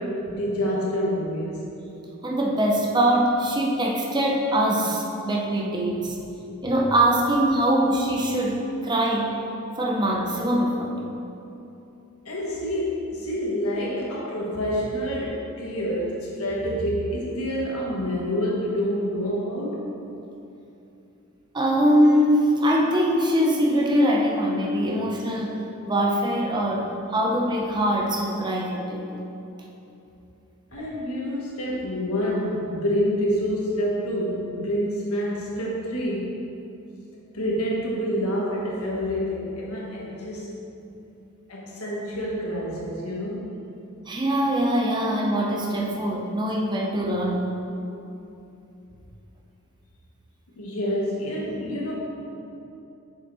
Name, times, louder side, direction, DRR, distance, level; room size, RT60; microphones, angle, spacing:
voice 1, 0.0-1.7 12.2-19.8 30.7-36.4 37.3-40.5 41.5-43.5 50.6-51.9, equal, 75° left, -3 dB, 1.6 m, -27 dB
voice 2, 2.2-6.2 6.6-9.4 9.8-11.0 21.5-26.9 27.1-29.2 30.8-30.9 44.1-47.5, equal, 20° right, -2 dB, 0.8 m, -22 dB
7.3 x 6.7 x 4.2 m, 2.8 s
head